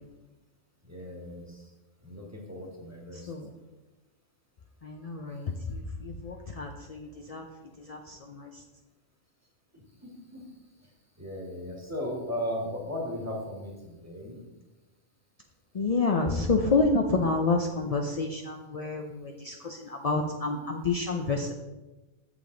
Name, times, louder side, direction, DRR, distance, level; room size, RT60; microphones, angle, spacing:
voice 1, 0.9-1.6 2.0-3.3 9.7-10.4 11.2-14.5, equal, 10° right, -1 dB, 1.5 m, -37 dB
voice 2, 4.8-5.5 6.0-7.4 7.9-8.0 8.3-8.5 15.8-19.8 20.0-21.5, left 3 dB, 55° left, 2 dB, 0.4 m, -28 dB
8.0 x 7.0 x 3.8 m, 1.1 s
omnidirectional pair, 1.4 m